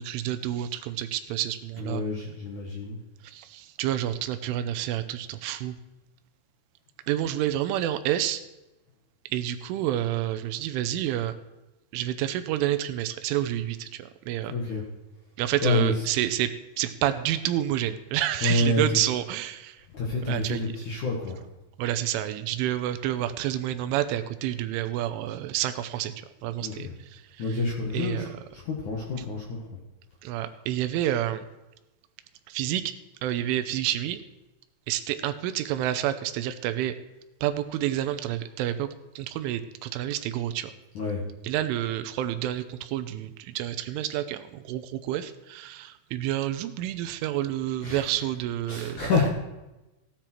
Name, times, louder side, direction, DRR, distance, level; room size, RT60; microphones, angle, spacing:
voice 1, 0.0-2.0 3.2-5.8 7.1-8.4 9.3-11.3 11.9-14.5 15.4-16.5 16.8-19.8 20.3-20.6 21.8-26.1 26.4-27.2 27.9-28.3 30.2-31.4 32.5-32.8 33.2-34.2 34.9-36.9 37.4-38.9 39.2-40.7 41.4-49.1, right 12 dB, 85° right, 11 dB, 3.2 m, -29 dB
voice 2, 1.8-3.0 14.5-14.8 15.6-16.1 18.4-18.8 19.9-21.4 26.6-26.9 27.4-29.8 40.9-41.2 47.8-48.2 48.7-49.3, left 3 dB, 60° left, -1 dB, 2.1 m, -28 dB
16.5 x 10.0 x 4.5 m, 1.0 s
omnidirectional pair, 5.7 m